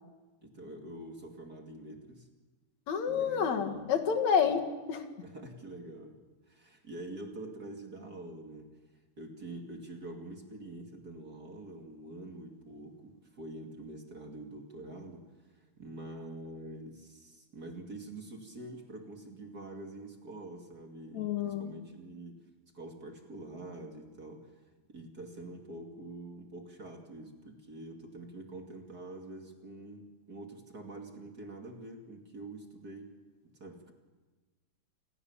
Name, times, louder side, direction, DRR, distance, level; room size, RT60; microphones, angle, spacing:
voice 1, 0.4-2.3 3.1-3.9 4.4-4.6 5.2-6.2 6.5-8.7 9.2-22.5 22.7-33.1 33.4-33.9, right 2 dB, 35° right, 3 dB, 2.6 m, -46 dB
voice 2, 2.9-5.1 21.1-21.7, left 7 dB, 70° left, 6 dB, 3.0 m, -29 dB
27.5 x 20.5 x 7.2 m, 1.3 s
omnidirectional pair, 3.3 m